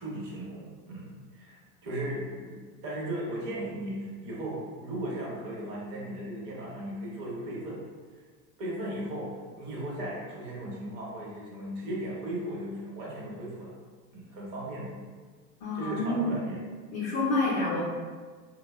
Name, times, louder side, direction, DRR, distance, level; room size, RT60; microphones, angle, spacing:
voice 1, 0.0-7.8 8.6-13.8 14.1-14.9 15.7-16.6, right 1 dB, 45° right, -5 dB, 0.9 m, -36 dB
voice 2, 15.6-16.5 16.9-17.8, left 2 dB, 35° left, -6 dB, 0.5 m, -28 dB
2.6 x 2.0 x 2.3 m, 1.5 s
hypercardioid pair, 105°, 48 cm